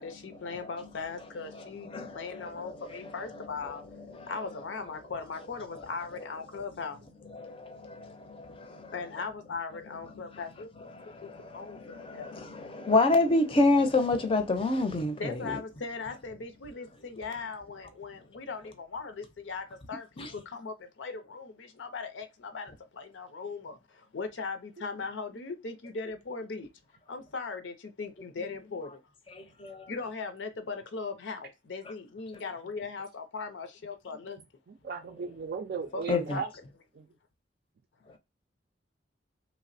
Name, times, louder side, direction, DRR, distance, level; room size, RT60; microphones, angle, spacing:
voice 1, 0.0-3.8 4.3-7.0 8.9-10.7 11.2-12.3 15.2-26.7 27.1-29.0 29.9-34.4 35.9-36.5, left 4 dB, 80° left, 0.5 m, -39 dB
voice 2, 1.5-2.9 4.1-4.3 7.3-8.9 10.9-15.6 20.2-20.3 29.3-29.9 36.1-36.4, left 2 dB, 30° left, 0.5 m, -29 dB
voice 3, 34.7-36.5 36.9-37.1, right 5 dB, 55° right, 0.3 m, -36 dB
3.1 x 2.0 x 2.5 m
head